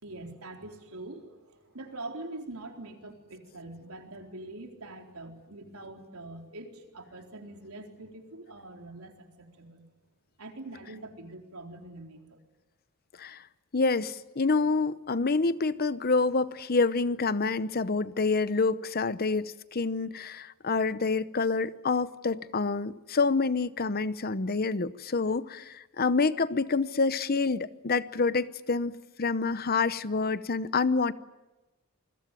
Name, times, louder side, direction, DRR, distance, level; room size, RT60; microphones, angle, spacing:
voice 1, 0.0-9.9 10.4-12.4, right 2 dB, 80° right, 4.2 m, -44 dB
voice 2, 13.7-31.1, left 4 dB, 45° left, 0.8 m, -27 dB
28.0 x 21.5 x 9.2 m
head